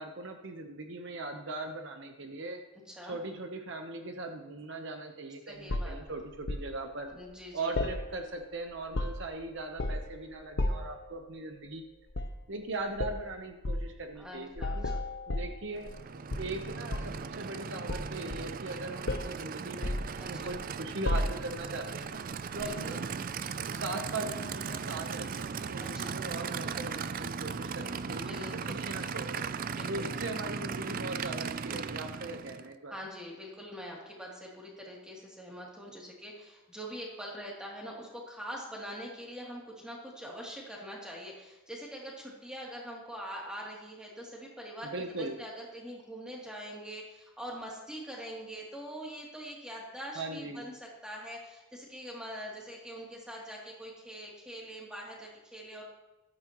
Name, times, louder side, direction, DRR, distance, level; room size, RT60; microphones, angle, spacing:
voice 1, 0.0-2.6 3.0-7.1 7.5-11.8 12.5-14.5 14.7-15.0 15.3-15.9 16.4-22.2 22.5-23.0 23.6-29.5 29.9-32.9 44.8-45.4 50.1-50.7, right 2 dB, 60° right, 5 dB, 1.0 m, -40 dB
voice 2, 2.9-3.2 5.5-6.0 7.1-7.7 14.1-15.0 20.2-20.6 22.5-23.0 25.8-26.2 27.9-28.8 29.7-30.2 32.8-55.8, equal, 5° right, -4 dB, 2.9 m, -44 dB
sound 1, 5.7-6.7 7.8-8.5 8.8-9.4 9.8-10.2 10.6-11.0 12.1-12.4 13.0-13.2 13.6-13.9 14.6-16.0 16.3-17.2 17.9-18.7 19.1-19.4 19.8-20.6 21.1-21.7 22.6-22.8, left 1 dB, 55° left, 0.9 m, -33 dB
Aircraft / Idling, 15.8-32.7, right 6 dB, 40° right, 0.4 m, -37 dB
15.0 x 13.0 x 3.1 m, 1.1 s
head